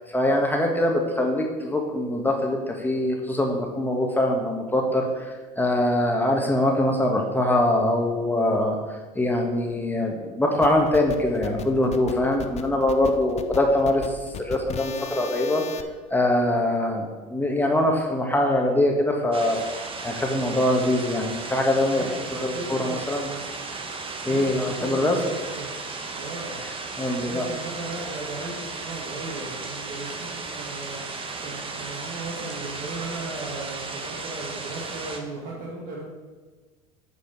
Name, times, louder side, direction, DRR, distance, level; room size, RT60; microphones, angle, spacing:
voice 1, 0.0-5.3 5.6-8.8 9.1-15.6 16.1-19.6 20.0-22.0 22.3-23.3 24.2-25.2 27.0-27.4, left 1 dB, 10° left, 1 dB, 1.7 m, -23 dB
sound 1, 10.6-15.8, left 7 dB, 35° left, 0.8 m, -37 dB
sound 2, 19.3-35.2, right 4 dB, 30° right, 1.4 m, -35 dB
voice 2, 21.9-23.4 24.2-25.7 26.1-26.6 27.2-36.0, right 2 dB, 55° right, -4 dB, 2.1 m, -37 dB
9.2 x 4.9 x 6.2 m, 1.4 s
hypercardioid pair, 80°, 19 cm